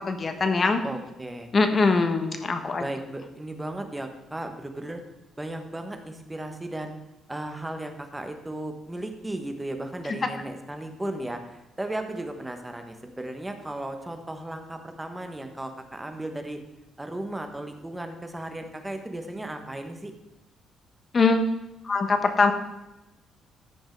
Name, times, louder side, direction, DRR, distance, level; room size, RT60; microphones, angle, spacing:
voice 1, 0.0-0.8 1.5-2.8 21.1-21.4 21.8-22.5, left 4 dB, 30° left, 7 dB, 1.2 m, -22 dB
voice 2, 0.8-1.5 2.8-5.0 5.4-7.0 7.3-16.6 17.0-20.1, right 1 dB, 10° right, 6 dB, 1.2 m, -35 dB
14.0 x 5.4 x 4.6 m, 0.97 s
cardioid pair, 125°, 0 cm